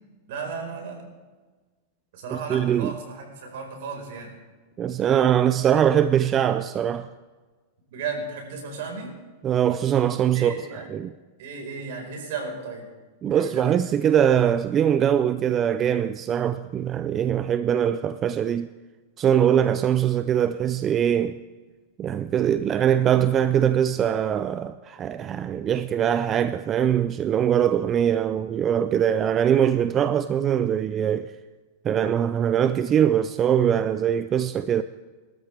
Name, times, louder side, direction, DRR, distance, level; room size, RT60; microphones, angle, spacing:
voice 1, 0.3-1.0 2.1-4.3 7.9-9.1 10.3-10.9 11.4-12.9 13.3-13.7, right 4 dB, 70° right, 4.6 m, -34 dB
voice 2, 2.3-2.9 4.8-7.1 9.4-10.5 10.9-11.1 13.2-18.7 19.2-21.4 22.0-31.3 31.8-34.8, right 9 dB, 25° right, 0.4 m, -22 dB
21.5 x 13.0 x 3.4 m
supercardioid pair, 140°, 0 cm